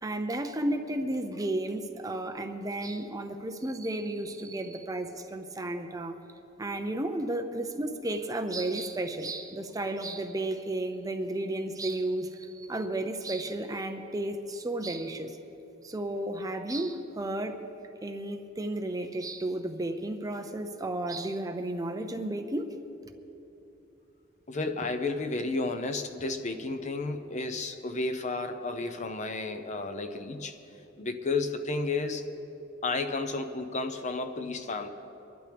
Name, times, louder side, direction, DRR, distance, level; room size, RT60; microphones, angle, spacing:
voice 1, 0.0-6.2 6.6-15.4 15.8-17.6 18.0-22.7, right 1 dB, 20° right, 6 dB, 0.7 m, -33 dB
voice 2, 24.5-30.6 31.0-32.3 32.8-34.9, left 3 dB, 40° left, 8 dB, 0.7 m, -32 dB
24.0 x 11.5 x 3.4 m, 3.0 s
head